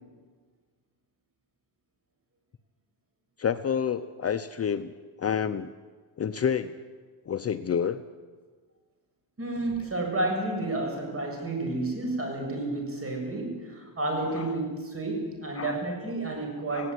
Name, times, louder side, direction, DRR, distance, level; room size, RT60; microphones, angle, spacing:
voice 1, 3.4-4.9 5.2-5.7 6.2-6.8 7.3-8.0 14.3-14.5 15.6-15.8 16.7-16.9, left 7 dB, 35° left, 10 dB, 0.7 m, -29 dB
voice 2, 9.4-16.9, right 2 dB, 30° right, 2 dB, 6.7 m, -31 dB
17.5 x 17.0 x 9.6 m, 1.5 s
cardioid pair, 115°, 45 cm